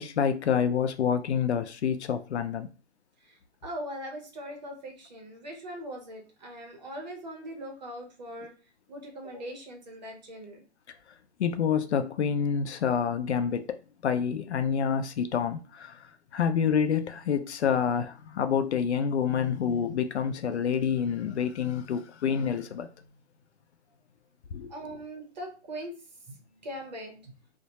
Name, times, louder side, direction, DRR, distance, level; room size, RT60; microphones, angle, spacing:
voice 1, 0.0-2.7 11.4-13.8 14.0-22.9 24.5-24.7, left 7 dB, 70° left, 0.5 m, -27 dB
voice 2, 3.2-8.5 8.9-10.6 24.7-25.9 26.3-27.3, equal, 40° right, 0.7 m, -41 dB
2.1 x 2.1 x 2.8 m
hypercardioid pair, 165°, 35 cm